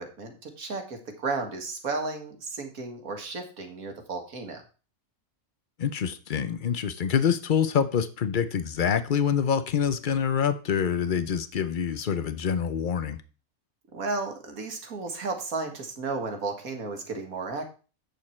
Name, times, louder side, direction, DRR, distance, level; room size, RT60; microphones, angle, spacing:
voice 1, 0.0-4.6 13.9-17.7, right 3 dB, 75° right, 2.0 m, -33 dB
voice 2, 5.8-13.2, left 7 dB, 50° left, 0.6 m, -26 dB
8.4 x 6.7 x 4.3 m
omnidirectional pair, 1.5 m